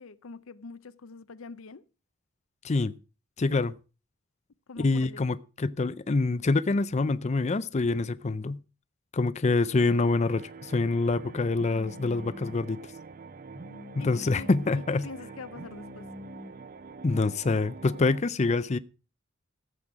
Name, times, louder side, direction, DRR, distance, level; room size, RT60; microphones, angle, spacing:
voice 1, 0.0-1.8 4.7-5.2 14.0-14.5 14.8-16.1, left 4 dB, 80° left, 0.6 m, -44 dB
voice 2, 3.4-3.7 4.8-8.6 9.1-12.8 13.9-15.1 17.0-18.8, left 3 dB, 35° left, 0.5 m, -26 dB
sound 1, 9.8-18.2, right 4 dB, 45° right, 0.6 m, -46 dB
Telephone, 11.5-12.6 13.5-14.6 15.5-16.5, left 1 dB, 60° right, 5.9 m, -45 dB
14.5 x 7.8 x 4.8 m
head